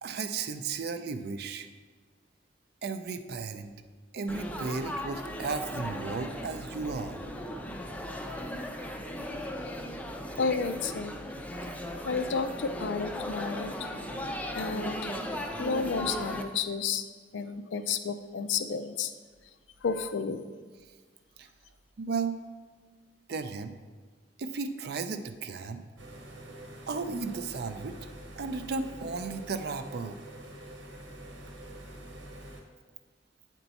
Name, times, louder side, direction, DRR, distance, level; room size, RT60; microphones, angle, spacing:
voice 1, 0.0-1.7 2.8-3.7 4.1-7.2 11.1-11.2 21.4-21.5 22.0-22.4 23.3-23.7 24.4-25.8 26.9-28.0 28.4-30.2, right 4 dB, 60° right, 9 dB, 0.4 m, -34 dB
Laughter / Chatter / Crowd, 4.3-16.4, equal, 10° left, 0.4 m, -37 dB
voice 2, 10.4-11.1 12.0-13.8 14.1-14.3 14.5-15.1 15.6-17.0 17.3-19.1 19.8-20.4, left 5 dB, 85° left, 10 dB, 0.4 m, -31 dB
sound 1, 26.0-32.6, right 1 dB, 85° right, 1.0 m, -46 dB
7.9 x 4.5 x 4.1 m, 1.5 s
head